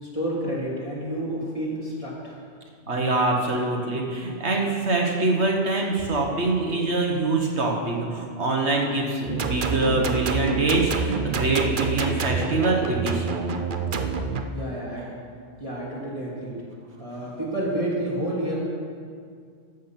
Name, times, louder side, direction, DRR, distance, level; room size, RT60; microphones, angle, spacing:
voice 1, 0.0-2.4 14.5-15.1 15.6-16.6 17.0-18.6, right 1 dB, 30° left, -6 dB, 2.8 m, -29 dB
voice 2, 2.9-13.4, right 2 dB, 65° right, 0 dB, 1.6 m, -24 dB
sound 1, 9.3-14.4, right 4 dB, 50° right, 0.8 m, -27 dB
13.5 x 7.5 x 5.9 m, 2.2 s
omnidirectional pair, 1.2 m